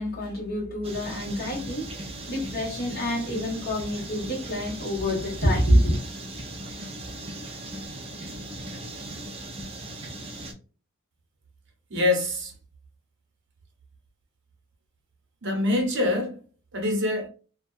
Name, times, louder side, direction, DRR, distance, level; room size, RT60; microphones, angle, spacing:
voice 1, 0.0-6.0, equal, 40° left, 1.2 m, -26 dB
sound 1, 0.8-10.5, right 1 dB, 25° right, 0.4 m, -38 dB
voice 2, 11.9-12.5 15.4-16.4 16.7-17.3, left 2 dB, 55° right, 0.8 m, -25 dB
2.5 x 2.3 x 2.3 m
head